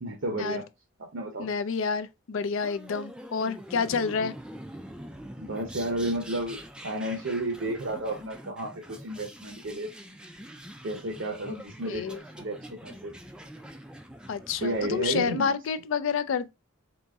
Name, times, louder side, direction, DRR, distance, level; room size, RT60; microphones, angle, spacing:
voice 1, 0.0-0.6 1.0-1.5 5.4-9.9 10.8-13.1 14.6-15.5, right 1 dB, 65° right, 0.7 m, -32 dB
voice 2, 1.4-4.3 11.5-11.6 11.9-12.2 14.3-16.5, left 5 dB, 70° left, 0.4 m, -29 dB
sound 1, 2.6-15.3, equal, 5° right, 0.3 m, -45 dB
3.9 x 3.0 x 3.5 m
head